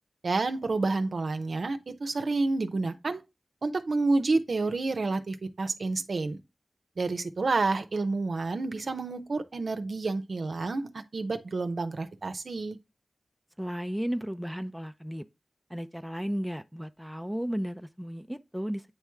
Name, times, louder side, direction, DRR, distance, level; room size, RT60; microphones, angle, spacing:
voice 1, 0.2-3.2 3.6-6.4 7.0-12.8, right 3 dB, 75° right, 0.7 m, -29 dB
voice 2, 13.6-15.2 15.7-18.8, equal, ahead, 0.5 m, -34 dB
9.0 x 3.1 x 3.5 m
cardioid pair, 45°, 0 cm